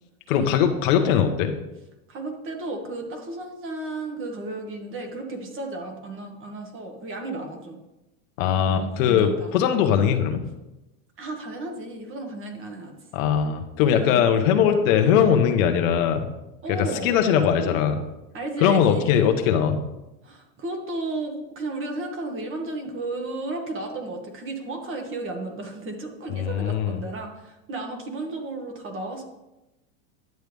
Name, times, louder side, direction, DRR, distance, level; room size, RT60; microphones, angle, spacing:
voice 1, 0.3-1.5 8.4-10.4 13.1-16.2 16.7-18.0 18.6-19.8 26.4-27.0, left 8 dB, 65° left, 6 dB, 1.2 m, -20 dB
voice 2, 2.1-7.8 8.7-9.8 11.2-12.9 13.9-14.2 16.6-17.2 18.3-19.4 20.2-29.2, right 2 dB, 30° right, 3 dB, 1.7 m, -34 dB
10.5 x 7.9 x 3.5 m, 0.96 s
supercardioid pair, 135°, 43 cm